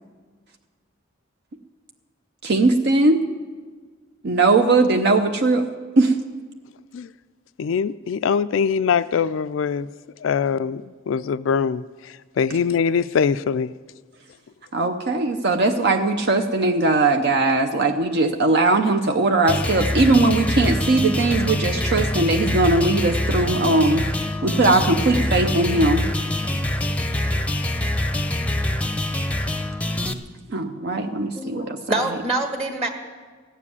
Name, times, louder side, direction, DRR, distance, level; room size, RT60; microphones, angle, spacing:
voice 1, 2.4-3.2 4.2-5.7 6.0-6.2 14.7-24.1 24.4-26.0 30.5-31.8, right 2 dB, 60° right, 0.7 m, -19 dB
voice 2, 7.6-9.9 10.2-13.7, left 6 dB, 80° left, 0.4 m, -23 dB
sound 1, 19.5-30.1, left 1 dB, 5° left, 0.7 m, -24 dB
voice 3, 31.3-32.9, right 2 dB, 35° right, 1.4 m, -25 dB
15.5 x 7.5 x 9.7 m
head